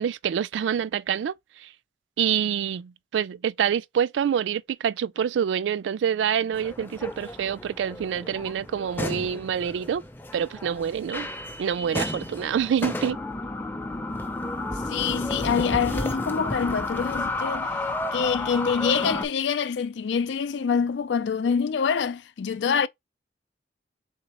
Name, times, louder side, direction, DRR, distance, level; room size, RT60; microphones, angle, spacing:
voice 1, 0.0-1.3 1.6-1.7 2.2-10.0 10.3-11.3 11.6-13.2, right 8 dB, 90° right, 0.3 m, -26 dB
sound 1, 6.5-19.3, left 2 dB, 10° left, 0.5 m, -32 dB
voice 2, 14.9-17.7 18.1-22.9, left 6 dB, 85° left, 0.4 m, -25 dB
4.2 x 3.7 x 2.9 m
head